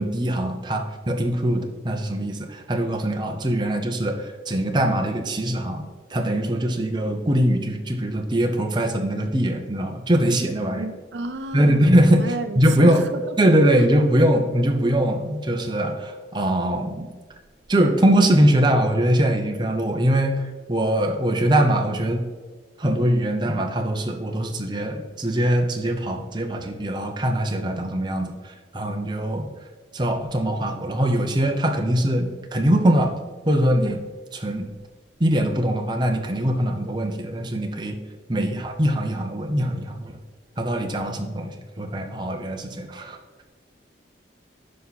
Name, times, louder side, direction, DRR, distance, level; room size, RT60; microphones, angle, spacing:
voice 1, 0.0-10.9 11.5-13.1 13.4-17.1 17.7-22.2 22.8-29.5 29.9-33.1 33.4-34.0 34.3-34.6 35.2-38.0 38.3-40.2 40.6-43.2, right 1 dB, 25° right, 0.8 m, -22 dB
voice 2, 10.8-11.8 12.2-13.9 38.3-38.6, right 3 dB, 80° right, 0.6 m, -33 dB
10.0 x 5.7 x 4.2 m
head